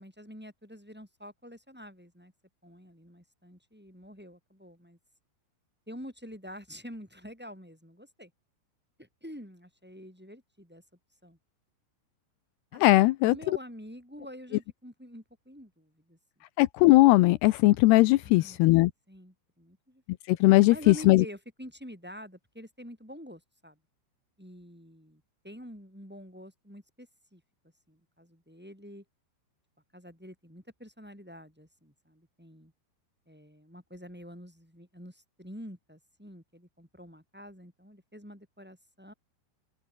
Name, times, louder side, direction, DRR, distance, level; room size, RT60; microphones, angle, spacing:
voice 1, 0.0-2.3 2.6-5.0 5.9-8.3 9.0-10.8 11.2-11.4 12.7-16.2 18.2-18.6 19.1-20.0 20.6-23.8 24.4-27.4 27.9-29.0 29.9-32.7 33.3-39.1, equal, ahead, 7.1 m, -47 dB
voice 2, 12.8-13.4 16.6-18.9 20.3-21.2, left 19 dB, 90° left, 2.3 m, -19 dB
open air
omnidirectional pair, 5.5 m